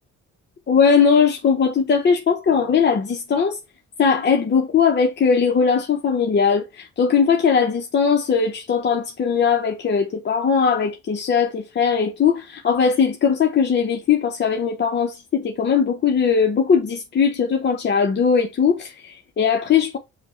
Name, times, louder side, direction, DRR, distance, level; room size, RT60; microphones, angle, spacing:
voice 1, 0.7-3.6 4.0-20.0, left 6 dB, 35° left, 0.7 m, -19 dB
5.7 x 2.1 x 3.1 m
cardioid pair, 90°, 30 cm